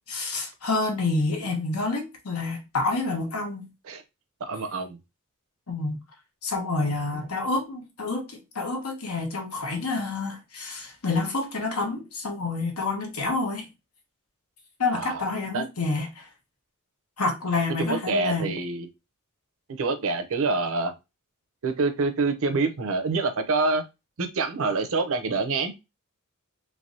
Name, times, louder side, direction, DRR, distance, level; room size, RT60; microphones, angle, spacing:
voice 1, 0.1-3.7 5.7-6.0 6.4-13.7 14.8-16.3 17.2-18.5, left 3 dB, 80° left, 1.1 m, -28 dB
voice 2, 4.5-5.0 6.8-6.9 14.9-15.3 15.5-15.6 17.9-18.9 19.8-20.9 21.6-23.8 24.2-25.8, right 3 dB, 65° right, 0.6 m, -26 dB
3.3 x 3.1 x 2.7 m
head